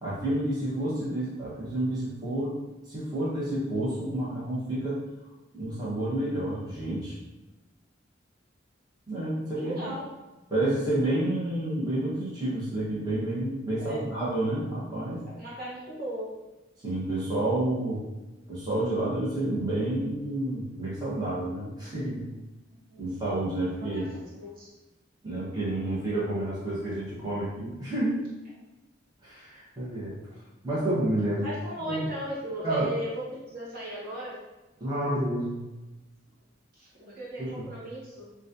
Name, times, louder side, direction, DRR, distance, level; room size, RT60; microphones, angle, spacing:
voice 1, 0.0-2.6 2.9-5.0 5.5-7.2 9.1-9.9 10.5-15.2 16.8-18.0 18.5-22.2 23.0-24.1 25.2-28.2 29.2-30.1 30.6-31.5 31.8-32.1 32.6-32.9 34.8-35.6 37.4-37.7, right 1 dB, 20° right, -9 dB, 1.0 m, -29 dB
voice 2, 9.5-10.0 13.8-14.0 15.3-16.3 22.7-23.2 23.8-24.7 31.4-34.4 36.7-38.3, equal, 50° right, -7 dB, 1.0 m, -37 dB
3.9 x 2.3 x 2.6 m, 1.1 s
head